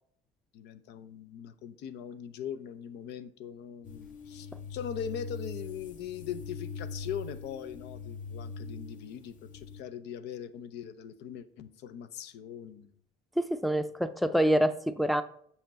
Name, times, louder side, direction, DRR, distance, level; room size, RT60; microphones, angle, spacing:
voice 1, 0.5-12.9, left 8 dB, 80° left, 12 dB, 0.7 m, -41 dB
sound 1, 3.8-9.8, left 4 dB, 50° left, 0.8 m, -42 dB
voice 2, 13.4-15.2, equal, ahead, 12 dB, 0.5 m, -26 dB
7.7 x 5.7 x 4.2 m, 0.65 s
cardioid pair, 110°, 17 cm